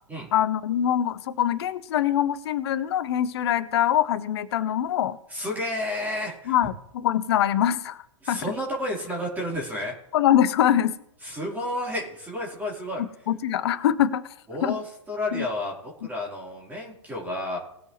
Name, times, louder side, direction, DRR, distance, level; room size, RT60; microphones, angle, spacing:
voice 1, 0.3-5.2 6.5-8.4 10.1-10.9 13.3-14.2 14.6-14.8 15.3-15.5, left 11 dB, 55° left, 15 dB, 0.9 m, -23 dB
voice 2, 5.3-6.5 8.2-9.9 11.2-13.0 14.5-17.6, left 1 dB, 10° right, -3 dB, 3.7 m, -31 dB
20.5 x 6.9 x 3.1 m, 0.77 s
figure-of-eight pair, 110°, 16 cm